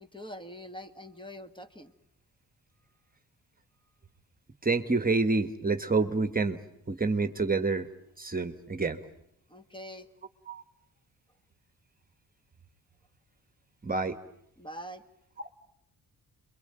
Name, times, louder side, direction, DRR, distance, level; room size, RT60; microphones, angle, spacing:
voice 1, 0.0-1.9 9.5-10.1 14.6-15.0, equal, 15° left, 8 dB, 1.9 m, -44 dB
voice 2, 4.6-6.6 6.9-7.9 8.2-9.0 10.5-10.6 13.8-14.2, right 3 dB, 25° right, 9 dB, 1.6 m, -28 dB
29.0 x 23.0 x 9.0 m, 0.77 s
cardioid pair, 95°, 35 cm